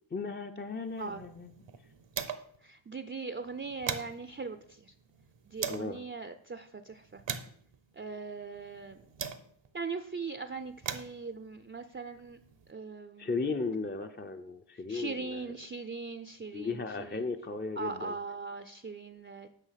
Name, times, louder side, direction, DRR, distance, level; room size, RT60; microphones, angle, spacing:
voice 1, 0.1-1.7 5.7-6.0 13.2-15.5 16.5-18.2, left 4 dB, 25° left, 5 dB, 0.5 m, -36 dB
sound 1, 0.9-2.7 3.0-3.1 3.4-6.0 6.6-9.8 10.5-12.7, right 7 dB, 70° right, 0.8 m, -42 dB
voice 2, 2.6-4.6 5.5-7.2 8.0-9.0 9.7-12.4 12.7-13.3 14.9-16.8 17.8-19.5, right 4 dB, 25° right, 9 dB, 0.5 m, -40 dB
9.1 x 5.9 x 5.7 m, 0.65 s
wide cardioid pair, 95°, 47 cm